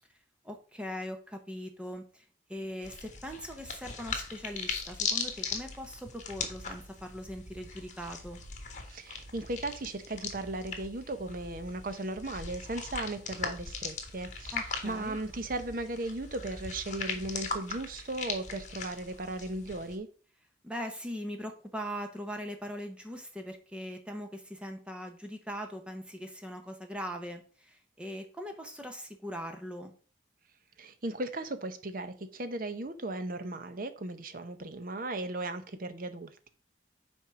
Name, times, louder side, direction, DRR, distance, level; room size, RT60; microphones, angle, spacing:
voice 1, 0.4-2.2 2.5-8.4 14.5-15.2 20.6-29.9, equal, 5° right, 4 dB, 0.7 m, -40 dB
sound 1, 2.8-20.0, left 5 dB, 40° left, 1.3 m, -39 dB
sound 2, 5.8-17.5, right 1 dB, 75° right, 0.9 m, -52 dB
voice 2, 8.9-20.1 30.8-36.5, right 2 dB, 50° right, 10 dB, 0.7 m, -37 dB
5.9 x 4.5 x 6.0 m, 0.41 s
head